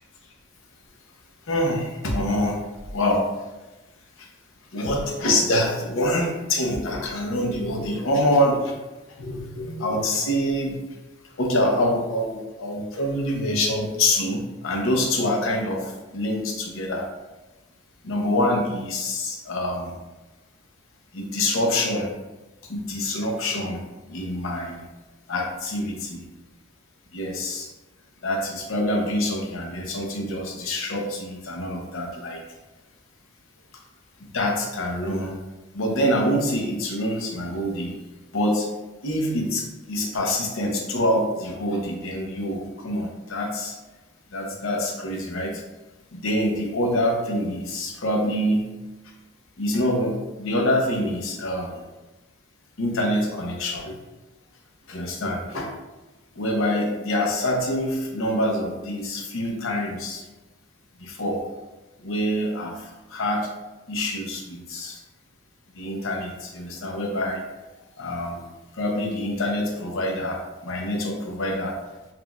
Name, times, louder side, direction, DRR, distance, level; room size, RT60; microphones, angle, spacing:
voice 1, 1.5-2.6 2.9-3.5 4.2-4.3 4.7-8.8 9.2-10.8 11.3-17.1 18.0-20.0 21.1-22.1 22.7-24.8 25.3-26.3 27.1-27.7 28.2-32.4 34.2-35.4 35.7-38.0 38.3-38.7 39.0-43.8 44.3-45.6 46.1-48.7 49.6-51.8 52.8-54.0 54.9-55.7 56.4-60.2 61.0-61.4 62.0-63.5 63.9-65.0 65.7-67.4 68.0-68.5 68.7-71.8, left 1 dB, 85° left, 1 dB, 0.7 m, -26 dB
5.8 x 2.5 x 2.3 m, 1.1 s
head